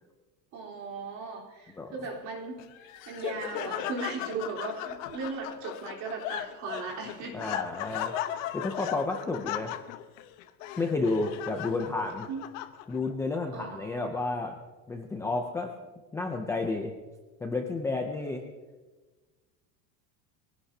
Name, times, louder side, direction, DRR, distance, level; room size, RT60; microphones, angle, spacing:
voice 1, 0.5-2.6 3.1-7.5 11.5-12.0 12.3-12.5 13.5-14.3, right 4 dB, 45° right, -2 dB, 3.8 m, -38 dB
Laughter, 2.6-13.1, left 12 dB, 70° left, 1.0 m, -37 dB
voice 2, 7.3-8.1 8.5-9.7 10.8-12.3 12.9-14.6 14.9-15.7 16.1-16.9 17.4-18.5, left 3 dB, 5° left, 2 dB, 0.4 m, -31 dB
23.0 x 17.0 x 2.8 m, 1.3 s
cardioid pair, 180°, 40 cm